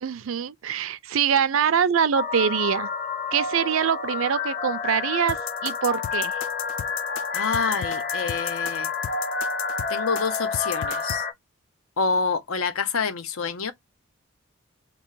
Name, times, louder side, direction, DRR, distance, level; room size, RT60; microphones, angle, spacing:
voice 1, 0.0-2.9 3.3-5.4 5.6-6.4, right 7 dB, 70° right, 0.4 m, -24 dB
sound 1, 2.1-11.3, left 4 dB, 45° left, 0.9 m, -29 dB
sound 2, 5.3-11.2, left 10 dB, 60° left, 0.3 m, -34 dB
voice 2, 7.3-8.9 9.9-11.2 12.0-13.7, left 5 dB, 85° left, 0.7 m, -27 dB
3.0 x 2.9 x 4.5 m
head